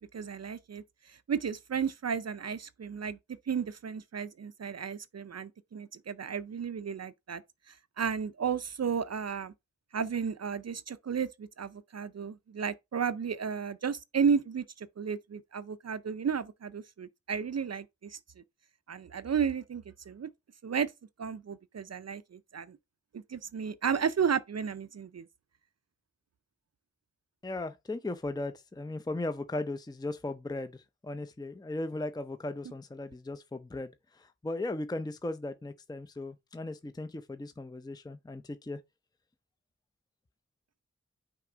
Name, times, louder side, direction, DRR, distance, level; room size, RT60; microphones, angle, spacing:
voice 1, 0.0-3.2 3.5-7.4 8.0-9.5 9.9-18.2 18.9-20.3 20.6-20.9 21.2-22.8 23.1-25.2, right 6 dB, 55° right, 0.5 m, -33 dB
voice 2, 27.4-38.8, left 2 dB, 15° left, 0.6 m, -37 dB
5.9 x 3.5 x 5.0 m
wide cardioid pair, 55°, 30 cm